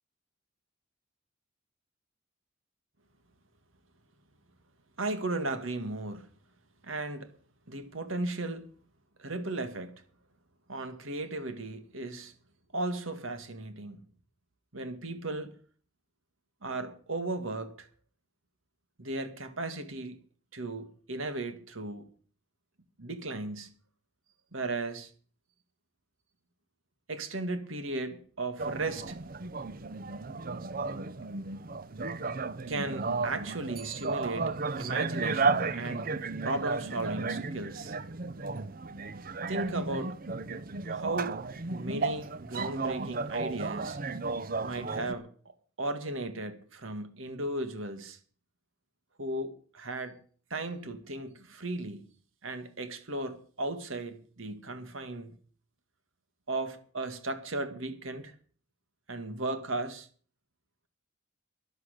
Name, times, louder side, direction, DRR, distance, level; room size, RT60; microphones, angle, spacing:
voice 1, 5.0-6.3 6.8-7.3 7.7-8.7 9.2-9.9 10.7-12.3 12.7-14.0 14.7-15.6 16.6-17.9 19.0-20.2 20.5-22.1 23.0-23.8 24.5-25.1 27.1-29.2 32.7-36.1 36.4-38.0 39.5-40.1 40.9-41.4 41.7-44.0 44.6-45.3 45.8-48.2 49.2-50.2 50.5-52.1 52.4-55.3 56.5-58.3 59.1-60.1, right 2 dB, 75° right, 1.9 m, -36 dB
sound 1, 28.6-45.1, right 4 dB, 45° right, 0.7 m, -34 dB
12.0 x 11.5 x 6.6 m
head